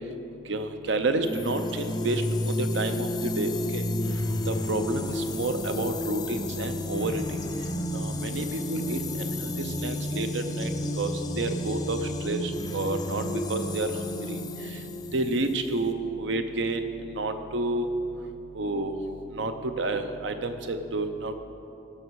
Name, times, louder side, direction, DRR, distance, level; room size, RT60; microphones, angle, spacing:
voice 1, 0.5-3.8 4.5-7.2 7.9-10.7 11.0-12.0 12.2-13.9 14.3-14.4 15.1-16.9 17.2-17.9 18.6-18.9 19.3-21.4, right 2 dB, 70° right, 8 dB, 0.7 m, -30 dB
sound 1, 1.2-15.9, left 1 dB, 20° left, 0.4 m, -31 dB
14.5 x 5.9 x 4.7 m, 2.7 s
head